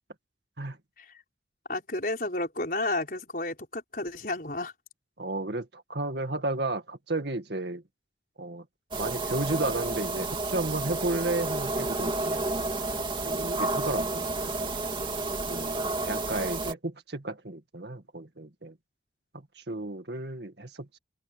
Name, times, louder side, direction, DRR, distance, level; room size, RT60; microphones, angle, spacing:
voice 1, 1.7-4.7, left 2 dB, 50° left, 5.6 m, -32 dB
voice 2, 5.2-7.8 8.4-8.7 9.0-12.4 13.2-14.8 15.5-18.8 19.3-21.0, right 2 dB, 65° right, 2.1 m, -33 dB
sound 1, 8.9-16.7, right 2 dB, 25° right, 2.4 m, -31 dB
head